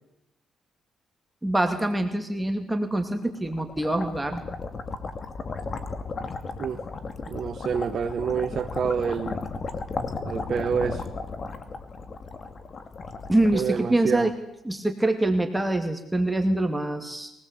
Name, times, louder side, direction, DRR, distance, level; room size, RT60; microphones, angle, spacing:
voice 1, 1.4-4.4 13.3-14.3 14.6-17.3, right 1 dB, 10° right, 5 dB, 2.6 m, -25 dB
sound 1, 3.2-14.4, left 4 dB, 40° left, 2.6 m, -35 dB
voice 2, 7.3-9.4 10.3-11.1 13.5-14.3, right 6 dB, 55° right, 8 dB, 1.1 m, -27 dB
23.0 x 18.5 x 8.3 m, 0.83 s
cardioid pair, 90°, 0 cm